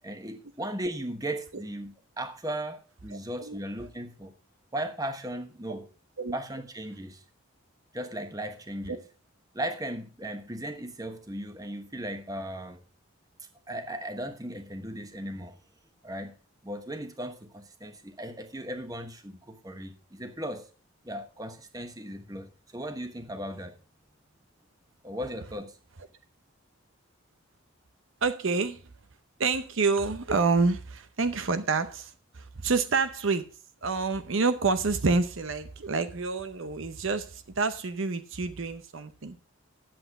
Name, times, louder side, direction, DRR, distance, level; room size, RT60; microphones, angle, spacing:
voice 1, 0.0-4.3 4.7-5.9 6.3-7.2 7.9-9.0 9.5-12.8 13.7-15.6 16.0-16.3 16.6-20.7 21.0-23.7 25.0-25.8, right 1 dB, 15° right, 7 dB, 1.1 m, -37 dB
voice 2, 28.2-28.8 29.4-33.5 33.8-39.4, right 4 dB, 65° right, 11 dB, 0.7 m, -28 dB
10.5 x 8.0 x 4.7 m, 0.36 s
head